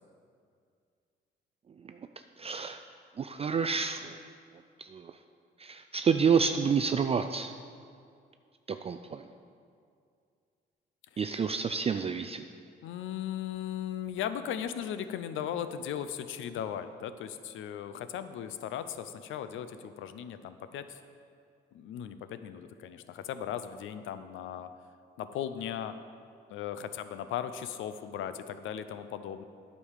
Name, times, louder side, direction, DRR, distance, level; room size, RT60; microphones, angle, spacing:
voice 1, 2.4-2.8 3.2-4.2 4.8-5.1 5.6-7.5 8.7-9.2 11.2-12.4, right 6 dB, 30° right, 8 dB, 0.4 m, -29 dB
voice 2, 12.8-21.0 21.7-24.7 25.2-25.9 26.5-29.4, left 9 dB, 80° left, 11 dB, 0.6 m, -37 dB
9.9 x 5.3 x 6.5 m, 2.3 s
cardioid pair, 90°, 20 cm